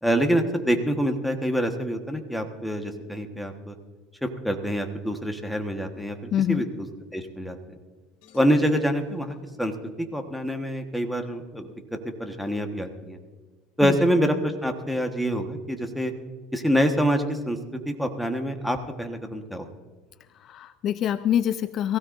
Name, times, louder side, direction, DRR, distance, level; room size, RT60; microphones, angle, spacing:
voice 1, 0.0-3.8 4.2-6.2 6.5-6.9 7.1-7.6 8.3-9.7 10.0-11.7 12.2-13.2 13.8-16.1 16.5-19.7, equal, ahead, 4 dB, 1.3 m, -26 dB
voice 2, 6.3-6.6 13.8-14.0 20.4-22.0, left 10 dB, 45° left, 13 dB, 0.4 m, -25 dB
sound 1, 8.2-9.8, left 8 dB, 80° left, 2.5 m, -49 dB
22.0 x 16.0 x 2.6 m, 1.3 s
supercardioid pair, 130°, 0 cm